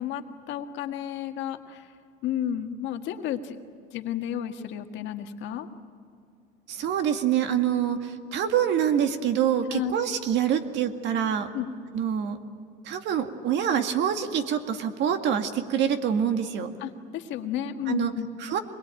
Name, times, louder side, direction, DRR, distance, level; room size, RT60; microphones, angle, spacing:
voice 1, 0.0-1.9 2.2-3.6 3.9-5.7 9.7-9.9 11.5-11.8 16.8-18.3, left 10 dB, 65° left, 6 dB, 1.8 m, -32 dB
voice 2, 6.7-11.5 11.9-12.4 12.8-16.7 17.9-18.1 18.4-18.6, right 9 dB, 60° right, 7 dB, 2.0 m, -26 dB
24.5 x 21.5 x 9.1 m, 2.3 s
cardioid pair, 110°, 20 cm